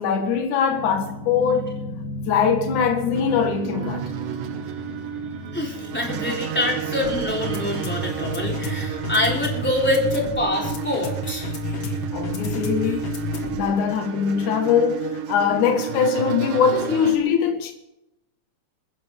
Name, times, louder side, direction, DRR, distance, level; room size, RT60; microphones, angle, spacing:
voice 1, 0.0-1.7 2.3-4.0 12.1-13.1 13.5-17.7, left 7 dB, 75° left, 3.0 m, -22 dB
sound 1, 0.7-13.7, left 1 dB, 55° left, 2.6 m, -32 dB
sound 2, 3.1-17.2, right 7 dB, 90° right, 2.7 m, -32 dB
voice 2, 5.5-11.5, left 1 dB, 5° left, 3.4 m, -25 dB
27.5 x 10.5 x 3.6 m
omnidirectional pair, 3.5 m